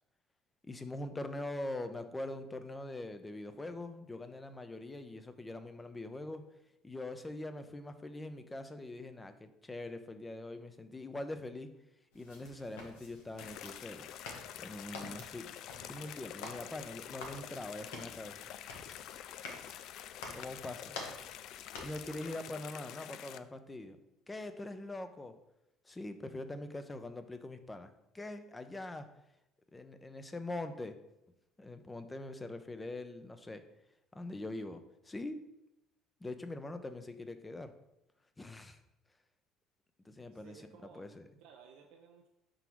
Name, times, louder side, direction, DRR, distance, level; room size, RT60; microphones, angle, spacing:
voice 1, 0.6-6.4 6.8-11.7 12.1-14.1 14.6-15.5 15.9-18.4 20.3-21.0 21.8-24.0 24.3-25.3 25.8-29.1 29.7-31.0 31.6-33.6 34.1-35.4 36.2-37.7 38.4-38.8 40.0-40.6 40.9-41.3, left 2 dB, 20° left, 9 dB, 0.7 m, -43 dB
sound 1, 12.1-22.3, left 3 dB, 90° left, 1.1 m, -50 dB
sound 2, 13.4-23.4, left 11 dB, 65° left, 0.3 m, -47 dB
voice 2, 17.4-18.0 40.3-41.1 41.4-42.3, right 6 dB, 75° right, 2 dB, 0.6 m, -58 dB
5.8 x 3.9 x 4.6 m, 0.86 s
supercardioid pair, 75°, 0 cm